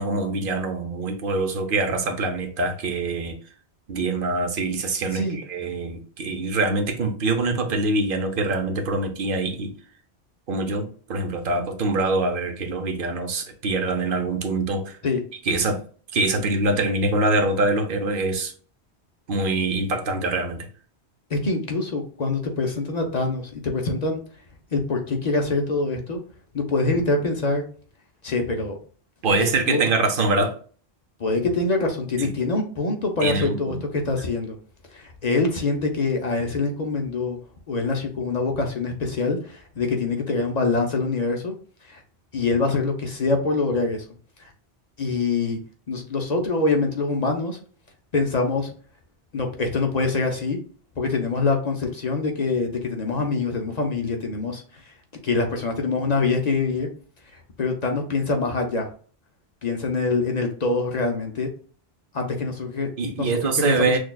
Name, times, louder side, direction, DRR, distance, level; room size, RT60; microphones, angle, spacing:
voice 1, 0.0-3.3 3.9-9.7 10.5-15.0 15.5-15.8 16.1-18.5 19.3-20.7 29.2-30.5 32.2-32.3 33.2-33.8 63.0-64.0, right 3 dB, 55° right, 0.8 m, -24 dB
voice 2, 21.3-24.2 24.7-26.2 26.5-27.6 28.2-28.8 29.7-29.8 31.2-33.8 34.0-34.6 34.9-37.4 37.7-41.5 41.8-42.0 42.3-44.1 44.4-44.5 45.0-45.6 45.9-47.6 48.1-48.7 49.3-50.6 51.0-54.9 55.2-56.9 57.3-58.9 59.6-61.5 62.1-63.3 63.6-64.0, left 3 dB, 45° left, 0.6 m, -24 dB
6.1 x 2.3 x 2.2 m
omnidirectional pair, 1.1 m